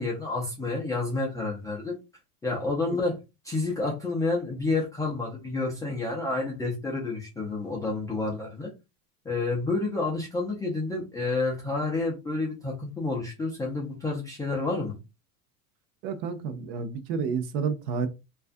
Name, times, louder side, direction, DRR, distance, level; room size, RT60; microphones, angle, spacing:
voice 1, 0.0-2.0 2.4-3.2 3.4-8.7 9.2-15.0, left 3 dB, 10° left, 0.4 m, -29 dB
voice 2, 16.0-18.1, right 5 dB, 45° right, 0.6 m, -30 dB
2.3 x 2.3 x 2.4 m
supercardioid pair, 120°, 43 cm